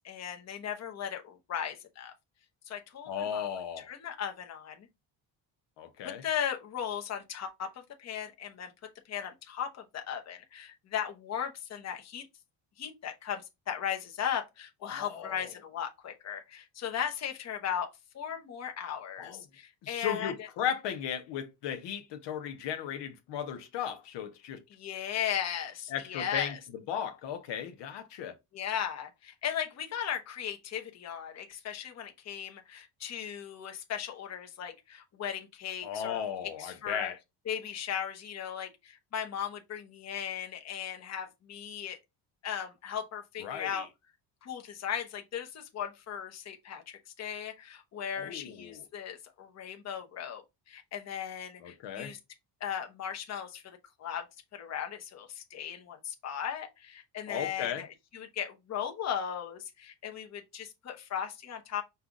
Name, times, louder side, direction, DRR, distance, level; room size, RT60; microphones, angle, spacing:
voice 1, 0.0-2.1 2.7-3.5 3.8-4.9 6.0-8.7 9.0-12.3 12.8-17.9 18.1-20.5 24.7-26.6 28.5-36.2 36.6-37.1 37.4-42.0 42.4-43.9 44.4-52.2 52.6-54.3 54.5-57.9 58.1-61.8, left 8 dB, 35° left, 0.9 m, -37 dB
voice 2, 3.1-3.9 5.8-6.2 14.8-15.4 19.2-19.4 19.8-24.6 25.9-26.6 26.9-28.3 35.8-37.1 43.4-43.8 48.2-48.8 51.6-52.1 57.3-57.8, left 8 dB, 70° left, 0.8 m, -36 dB
5.6 x 2.3 x 3.7 m
cardioid pair, 150°, 44 cm